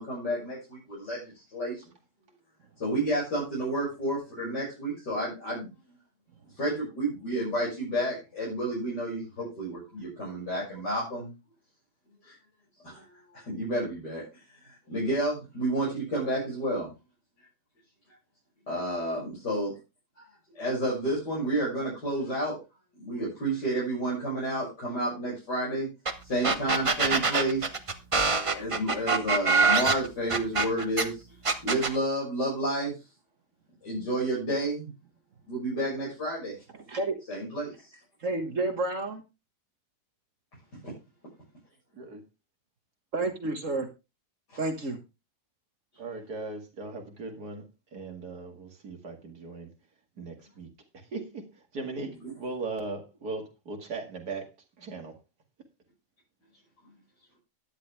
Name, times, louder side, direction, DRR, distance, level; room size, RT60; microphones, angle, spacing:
voice 1, 0.0-1.8 2.8-5.7 6.6-11.3 12.3-12.4 12.8-14.2 14.9-16.9 18.7-19.7 20.2-20.3 20.6-22.6 23.0-25.9 26.3-27.7 28.2-31.1 31.6-33.0 33.8-34.9 35.5-36.6 37.3-37.7 52.2-52.4, right 1 dB, 90° left, 7.3 m, -30 dB
sound 1, 26.1-26.2 26.4-31.0 31.5-32.0, right 4 dB, 25° right, 0.7 m, -24 dB
voice 2, 36.7-37.2 38.2-39.2 43.1-43.9 44.6-45.0, right 2 dB, 50° right, 1.8 m, -30 dB
voice 3, 46.0-47.6 47.9-49.7 50.2-50.7 51.1-51.4 51.7-52.1 52.4-54.5 54.8-55.1, right 3 dB, 65° right, 2.7 m, -38 dB
12.0 x 10.5 x 3.4 m
omnidirectional pair, 1.8 m